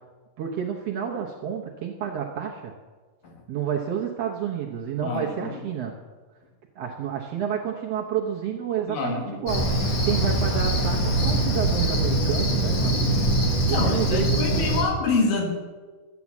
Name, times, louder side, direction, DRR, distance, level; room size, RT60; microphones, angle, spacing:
voice 1, 0.4-2.7 3.5-5.9 6.8-13.0 13.6-14.6, right 8 dB, 65° right, -1 dB, 1.6 m, -30 dB
voice 2, 5.0-5.7 8.9-9.4 13.5-15.5, left 4 dB, 85° left, 2 dB, 3.5 m, -27 dB
Cricket, 9.5-14.8, right 1 dB, 55° left, 3.0 m, -23 dB
12.0 x 8.6 x 7.2 m, 1.4 s
omnidirectional pair, 3.8 m